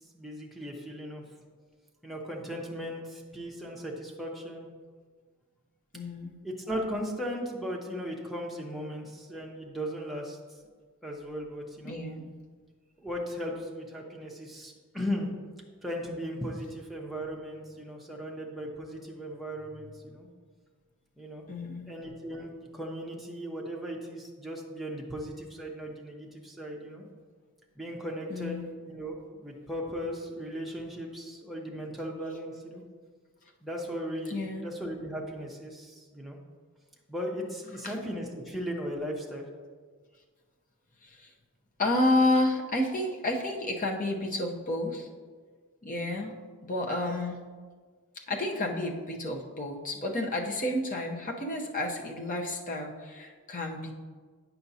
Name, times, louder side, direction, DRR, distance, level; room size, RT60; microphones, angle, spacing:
voice 1, 0.1-1.2 2.0-4.7 6.4-10.4 11.0-12.0 13.0-15.3 15.8-20.3 21.2-21.4 21.9-27.0 27.8-32.8 33.6-36.4 37.1-39.5, equal, ahead, -2 dB, 0.8 m, -37 dB
voice 2, 5.9-6.4 11.8-12.3 21.5-21.9 28.3-28.7 34.3-34.7 37.8-37.9 41.0-41.3 41.8-45.1 45.8-46.3 46.6-47.4 48.3-53.9, left 1 dB, 35° left, 1 dB, 0.7 m, -30 dB
8.5 x 5.7 x 2.7 m, 1.5 s
head